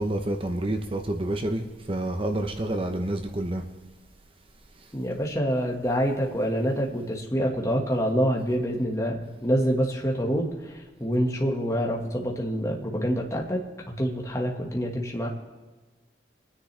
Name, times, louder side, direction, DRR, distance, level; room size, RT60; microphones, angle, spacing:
voice 1, 0.0-3.6 4.8-4.9, right 1 dB, 30° right, 0.8 m, -28 dB
voice 2, 4.9-13.6 14.0-15.3, equal, 15° left, 1.7 m, -26 dB
25.5 x 10.0 x 3.4 m
head